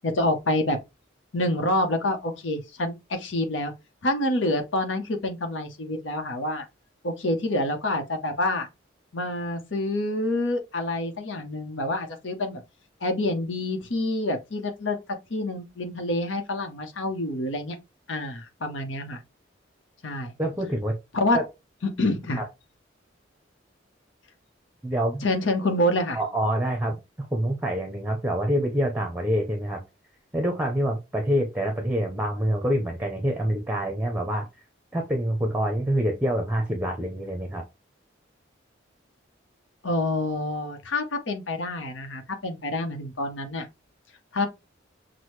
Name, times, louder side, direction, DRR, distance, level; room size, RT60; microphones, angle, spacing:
voice 1, 0.0-0.8 1.3-3.7 4.0-6.7 7.0-8.7 9.1-12.6 13.0-15.0 15.3-17.8 18.1-19.2 20.0-20.3 21.1-21.4 21.8-22.4 25.2-26.2 39.8-43.7 44.3-44.5, left 1 dB, 85° left, 0.9 m, -27 dB
voice 2, 20.4-20.9 21.3-21.4 22.4-22.5 24.8-25.2 26.1-29.8 30.3-34.5 34.9-37.6, equal, 10° right, 0.7 m, -26 dB
6.1 x 2.2 x 3.1 m
head